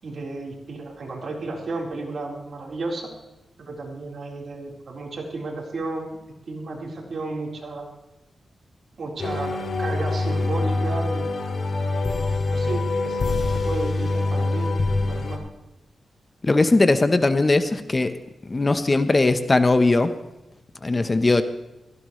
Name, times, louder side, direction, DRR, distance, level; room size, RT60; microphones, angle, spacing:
voice 1, 0.0-3.1 3.6-6.1 6.5-7.9 9.0-11.3 12.5-14.7 15.0-15.4, right 3 dB, 60° right, -1 dB, 4.2 m, -33 dB
sound 1, 9.2-15.4, left 3 dB, 55° left, 2.4 m, -24 dB
voice 2, 16.4-18.2 18.5-20.1 20.8-21.4, left 2 dB, 30° left, 10 dB, 1.0 m, -19 dB
17.0 x 15.5 x 3.3 m, 0.98 s
cardioid pair, 85°, 0 cm